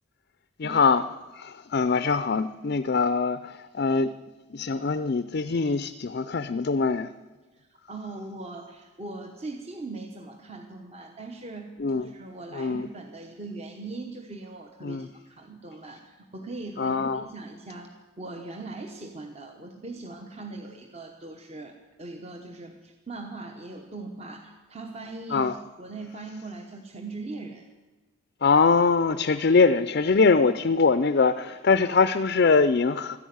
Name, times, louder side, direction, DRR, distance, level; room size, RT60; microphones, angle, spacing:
voice 1, 0.6-1.0 1.3-4.1 4.5-7.1 11.8-12.1 12.5-12.9 14.8-15.1 16.8-17.2 25.3-25.5 28.4-33.2, left 4 dB, 50° left, 0.5 m, -23 dB
voice 2, 7.6-17.9 18.2-25.5 25.8-27.6, right 3 dB, 30° right, 1.0 m, -40 dB
13.5 x 11.0 x 9.4 m
head